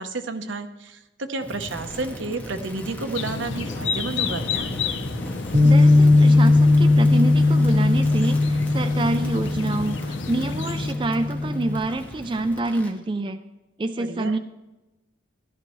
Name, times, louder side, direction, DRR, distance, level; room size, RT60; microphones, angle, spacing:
voice 1, 0.0-4.8 14.0-14.4, right 3 dB, 80° right, 8 dB, 0.9 m, -31 dB
Crackle, 1.4-13.0, equal, 10° left, 0.7 m, -37 dB
sound 1, 3.1-10.9, left 5 dB, 75° left, 0.6 m, -31 dB
Bass guitar, 5.5-11.8, left 2 dB, 40° right, 0.9 m, -18 dB
voice 2, 5.6-13.4 13.8-14.4, right 2 dB, 25° right, 8 dB, 0.4 m, -27 dB
14.0 x 12.0 x 3.1 m, 1.0 s
head